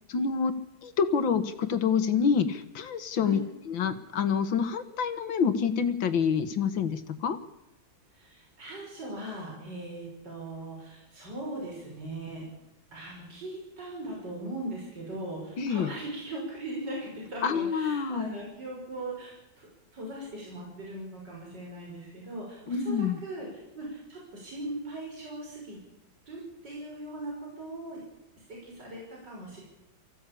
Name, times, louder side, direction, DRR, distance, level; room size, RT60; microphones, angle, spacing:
voice 1, 0.1-0.5 0.8-3.4 3.7-7.4 15.6-15.9 17.4-18.3 22.7-23.2, left 6 dB, 70° left, 10 dB, 2.3 m, -27 dB
voice 2, 8.1-12.4 12.9-19.7 19.9-25.8 26.3-28.0 28.5-29.6, right 1 dB, 60° right, -2 dB, 6.6 m, -39 dB
25.0 x 15.5 x 8.5 m, 0.90 s
omnidirectional pair, 2.2 m